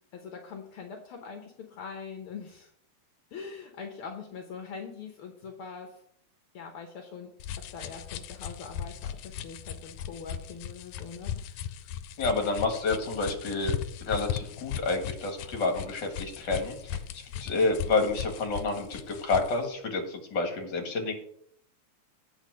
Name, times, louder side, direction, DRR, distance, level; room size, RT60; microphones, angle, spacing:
voice 1, 0.1-2.7 3.3-6.0 6.5-7.3 7.6-11.9, left 5 dB, 60° left, 3 dB, 1.5 m, -43 dB
sound 1, 7.4-19.6, left 10 dB, 80° left, 1.8 m, -37 dB
voice 2, 12.2-13.7 14.0-17.0 17.4-21.1, left 3 dB, 40° left, 3 dB, 2.1 m, -29 dB
8.8 x 6.1 x 6.3 m, 0.67 s
omnidirectional pair, 3.5 m